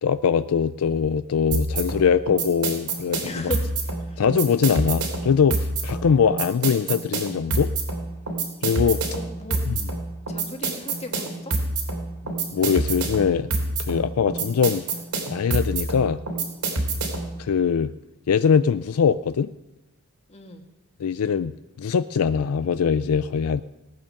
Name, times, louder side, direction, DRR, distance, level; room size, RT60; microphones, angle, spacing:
voice 1, 0.0-3.5 4.2-7.7 8.6-9.0 9.7-9.8 12.5-13.5 13.8-14.8 15.3-16.2 17.4-17.9 18.3-19.5 21.0-21.5 21.8-23.6, left 6 dB, 70° left, 13 dB, 0.4 m, -22 dB
sound 1, 1.5-17.4, right 2 dB, 85° right, 3.2 m, -27 dB
voice 2, 3.2-3.6 4.0-4.2 5.9-6.5 8.7-9.6 10.3-11.6 20.3-20.7, left 2 dB, 30° left, 4 dB, 1.7 m, -37 dB
18.5 x 8.9 x 6.5 m, 0.99 s
head